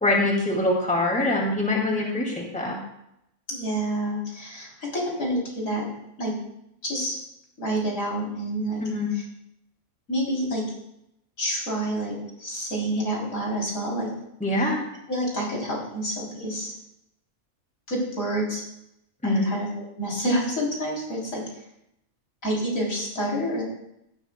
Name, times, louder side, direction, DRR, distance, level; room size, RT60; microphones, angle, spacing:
voice 1, 0.0-2.8 8.8-9.1 14.4-14.8 19.2-19.5, left 1 dB, 5° left, -1 dB, 2.3 m, -24 dB
voice 2, 3.5-5.8 6.2-6.3 6.8-7.2 7.6-8.8 10.1-10.6 11.4-12.1 12.4-14.1 15.1-16.7 17.9-18.6 19.2-19.7 20.0-21.4 22.4-23.6, right 1 dB, 65° left, -3 dB, 3.8 m, -28 dB
16.0 x 12.5 x 2.3 m, 0.80 s
omnidirectional pair, 1.5 m